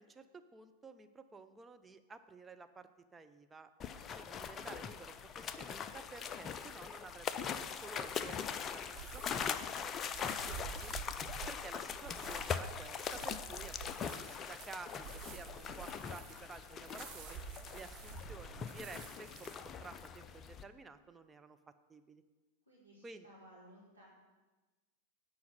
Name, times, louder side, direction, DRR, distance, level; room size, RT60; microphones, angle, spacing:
voice 1, 0.0-7.5 7.8-10.9 11.5-17.4 17.7-21.6 21.9-22.2 23.0-23.3, right 4 dB, 15° right, 8 dB, 0.6 m, -53 dB
sound 1, 3.8-20.6, left 7 dB, 25° left, 0.5 m, -42 dB
sound 2, 8.9-19.6, right 7 dB, 40° right, 1.1 m, -50 dB
voice 2, 22.6-24.1, equal, 90° right, -8 dB, 3.0 m, -59 dB
9.5 x 5.2 x 7.6 m, 1.2 s
figure-of-eight pair, 90°, 0 cm